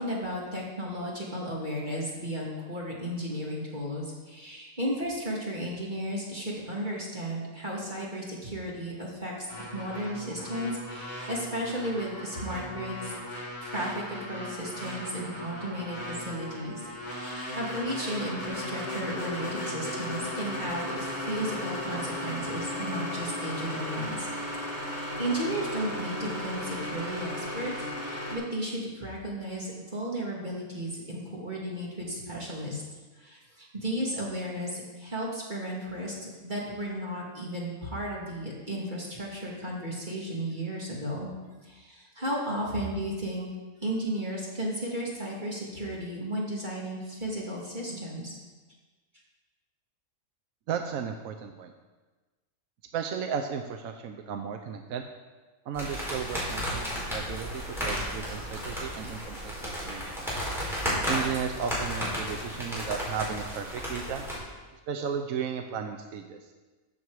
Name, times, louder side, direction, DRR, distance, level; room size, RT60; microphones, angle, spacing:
voice 1, 0.0-9.5 9.7-13.1 13.6-24.3 24.8-32.8 33.2-41.3 41.6-43.5 43.8-48.3, equal, 30° right, -4 dB, 2.2 m, -34 dB
sound 1, 9.5-28.4, left 1 dB, 40° left, 3.6 m, -36 dB
voice 2, 50.7-51.7 52.9-55.0 55.7-60.3 61.1-64.2 64.9-66.4, right 7 dB, 75° right, 5 dB, 1.1 m, -34 dB
sound 2, 55.7-64.4, equal, ahead, 4.2 m, -33 dB
14.0 x 7.1 x 4.8 m, 1.3 s
omnidirectional pair, 1.5 m